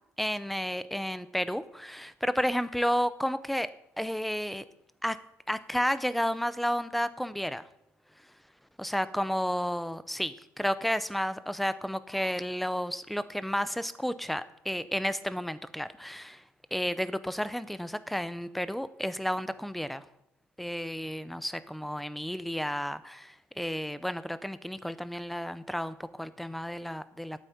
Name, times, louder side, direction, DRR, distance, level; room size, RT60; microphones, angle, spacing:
voice 1, 0.2-3.7 4.0-4.6 5.0-5.2 5.5-7.6 8.8-16.4 16.7-20.1 20.6-27.5, equal, ahead, 15 dB, 0.6 m, -32 dB
9.1 x 8.1 x 9.4 m, 0.80 s
cardioid pair, 155°, 5 cm